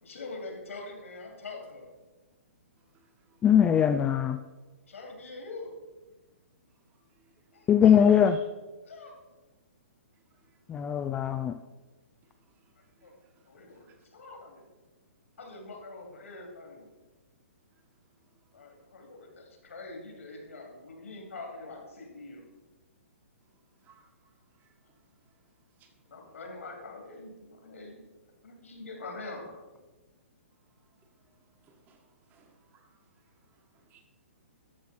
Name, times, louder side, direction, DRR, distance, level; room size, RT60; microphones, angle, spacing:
voice 1, 0.0-1.9 4.9-5.7 7.5-8.2 8.8-9.1 13.0-13.1 13.5-14.7 15.4-16.9 18.5-22.4 26.1-28.1 28.4-29.5, left 3 dB, 75° left, 2.8 m, -44 dB
voice 2, 3.4-4.4 7.7-8.4 10.7-11.6, left 8 dB, 15° left, 0.3 m, -21 dB
voice 3, 31.6-32.0 32.3-32.9 33.9-34.0, right 6 dB, 25° right, 1.5 m, -61 dB
12.0 x 6.3 x 4.3 m
hypercardioid pair, 130°, 7 cm